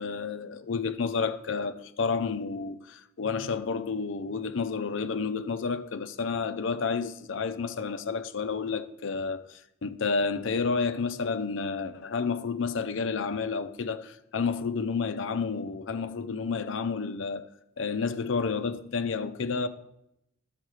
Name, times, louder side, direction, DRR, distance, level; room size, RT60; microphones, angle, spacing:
voice 1, 0.0-17.5 17.8-19.7, left 5 dB, 65° left, 0.5 m, -30 dB
10.5 x 6.4 x 4.8 m
head